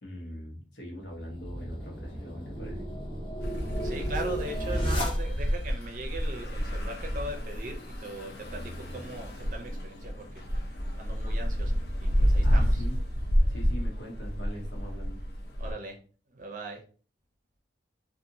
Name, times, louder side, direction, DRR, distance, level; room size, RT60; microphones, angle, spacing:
voice 1, 0.0-2.9 12.4-13.0 13.5-15.2, equal, 85° left, 0 dB, 1.0 m, -42 dB
sound 1, 1.1-5.7, equal, 30° left, 0.7 m, -34 dB
sound 2, 3.4-15.7, equal, 60° left, 0.6 m, -29 dB
voice 2, 3.8-10.4 11.0-11.7 12.0-12.8 15.6-16.0 16.3-16.8, right 2 dB, 45° right, 3 dB, 0.6 m, -39 dB
2.8 x 2.5 x 2.7 m, 0.40 s
head